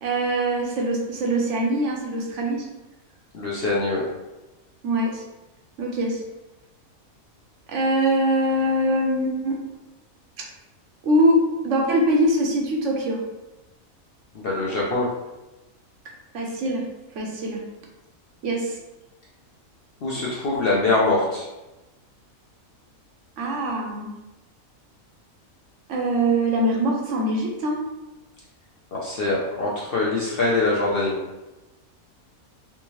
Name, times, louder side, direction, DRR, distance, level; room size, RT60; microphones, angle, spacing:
voice 1, 0.0-2.7 4.8-5.2 5.8-6.2 7.7-9.6 11.0-11.4 11.6-13.2 16.3-16.8 17.2-17.6 18.4-18.8 23.4-24.1 25.9-27.8, right 1 dB, 65° right, 0 dB, 0.9 m, -23 dB
voice 2, 3.3-4.0 14.3-15.1 20.0-21.5 28.9-31.2, left 2 dB, 55° left, -5 dB, 0.7 m, -23 dB
3.5 x 2.8 x 3.0 m, 1.0 s
omnidirectional pair, 1.5 m